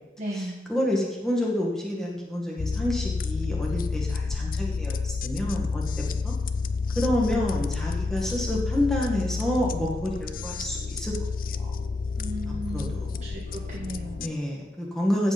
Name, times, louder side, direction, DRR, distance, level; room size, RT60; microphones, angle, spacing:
voice 1, 0.2-0.7 12.2-12.9 13.2-14.3 15.1-15.3, right 1 dB, 40° right, -3 dB, 1.5 m, -35 dB
voice 2, 0.7-5.8 6.2-6.3 7.0-11.1 11.5-11.7 12.7-13.1 14.2-15.3, left 1 dB, 5° left, -4 dB, 1.9 m, -28 dB
sound 1, 2.6-14.3, left 4 dB, 50° left, 0.5 m, -30 dB
15.5 x 5.3 x 5.3 m, 1.0 s
head